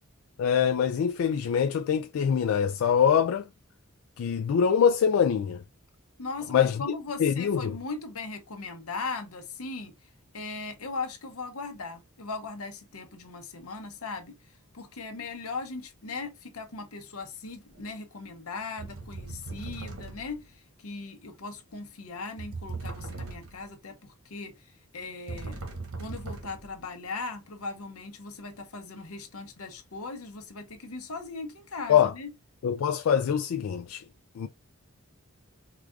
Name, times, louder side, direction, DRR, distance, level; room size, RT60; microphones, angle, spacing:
voice 1, 0.4-3.5 4.2-5.6 6.5-6.8 7.2-7.8 31.9-32.1 32.6-34.0 34.4-34.5, left 7 dB, 70° left, 0.3 m, -24 dB
voice 2, 6.2-9.9 10.3-14.4 14.7-24.5 24.9-25.6 26.0-32.3, left 4 dB, 90° left, 0.9 m, -38 dB
sound 1, 17.7-18.0 18.8-20.5 22.4-23.7 25.3-26.8, right 3 dB, 85° right, 1.3 m, -39 dB
4.8 x 2.4 x 2.4 m
head